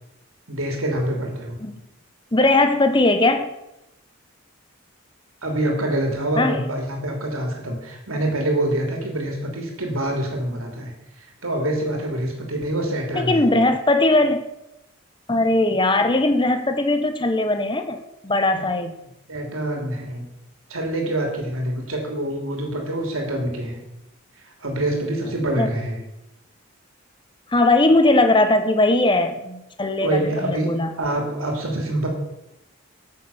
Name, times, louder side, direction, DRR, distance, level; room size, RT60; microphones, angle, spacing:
voice 1, 0.5-1.6 5.4-10.9 11.4-13.5 18.5-18.6 19.3-20.3 20.7-23.8 24.6-26.0 30.0-32.1, right 1 dB, 80° right, 1 dB, 3.0 m, -25 dB
voice 2, 2.3-3.5 6.4-6.7 13.1-14.5 15.3-19.0 25.6-25.7 27.5-30.9, left 2 dB, 20° left, 8 dB, 0.9 m, -19 dB
9.3 x 7.6 x 7.0 m, 0.91 s
head